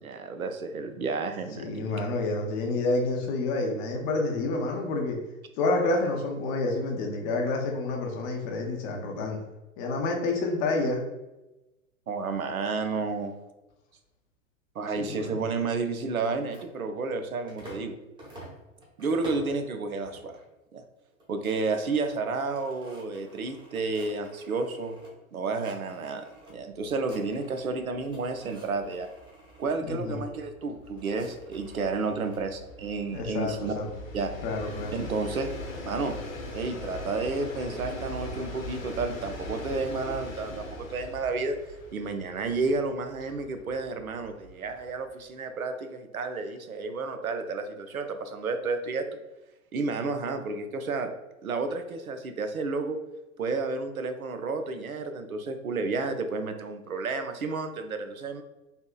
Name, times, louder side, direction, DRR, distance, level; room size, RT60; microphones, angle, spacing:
voice 1, 0.0-1.9 12.1-13.3 14.8-18.0 19.0-20.3 20.7-20.8 21.3-24.9 25.3-29.1 29.6-33.7 34.1-34.3 34.9-35.5 35.8-36.2 36.5-41.6 41.9-49.1 49.7-51.1 51.4-53.0 53.4-58.4, right 3 dB, 85° right, 7 dB, 0.5 m, -31 dB
voice 2, 1.6-5.2 5.6-9.4 9.8-11.0 15.0-15.4 29.9-30.2 33.1-33.9 34.4-34.9, left 2 dB, 30° left, 1 dB, 0.5 m, -28 dB
sound 1, 16.2-17.9 18.2-19.6 20.0-20.5 20.8-20.9 21.1-25.1 25.4-26.5 26.8-27.7 28.0-29.8 30.6-32.4, equal, 10° right, 0.8 m, -49 dB
Train, 26.8-27.0 27.3-27.4 27.7-45.1, left 1 dB, 75° left, 1.0 m, -41 dB
3.4 x 2.7 x 2.2 m, 1.0 s
figure-of-eight pair, 100°, 41 cm